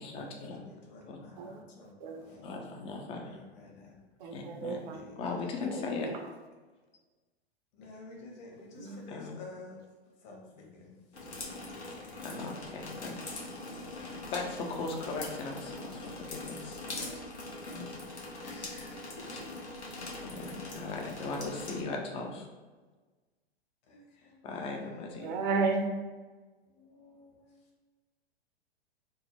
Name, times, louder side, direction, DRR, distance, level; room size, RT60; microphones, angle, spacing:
voice 1, 0.0-0.6 1.1-1.2 2.4-3.4 4.3-4.9 5.2-6.1 9.1-9.4 12.2-13.4 13.9-16.8 17.7-17.8 20.2-22.5 24.4-25.3, left 3 dB, 20° left, 1 dB, 0.4 m, -38 dB
voice 2, 0.5-2.6 3.2-4.3 4.9-5.1 7.8-9.8 10.2-12.2 18.4-19.4 20.3-20.5 23.9-25.3 27.4-27.6, left 3 dB, 40° left, -1 dB, 1.0 m, -51 dB
voice 3, 4.2-5.0 5.6-6.1 8.7-9.1 25.2-25.8, right 4 dB, 45° right, 4 dB, 0.6 m, -33 dB
sound 1, 11.1-21.8, left 2 dB, 90° left, 0.8 m, -42 dB
3.5 x 2.0 x 4.2 m, 1.3 s
figure-of-eight pair, 105°, 32 cm